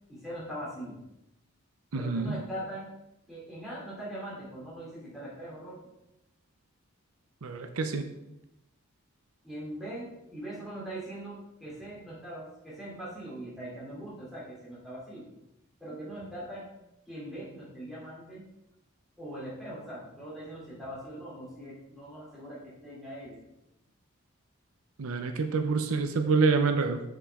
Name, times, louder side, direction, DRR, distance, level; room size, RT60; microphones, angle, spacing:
voice 1, 0.1-1.0 1.9-2.9 3.3-5.8 9.4-15.3 15.8-16.7 17.1-18.4 19.2-23.4, right 1 dB, ahead, -8 dB, 3.2 m, -41 dB
voice 2, 1.9-2.4 7.4-8.1 25.0-27.0, right 4 dB, 80° right, 7 dB, 0.6 m, -27 dB
7.2 x 7.2 x 3.7 m, 0.87 s
head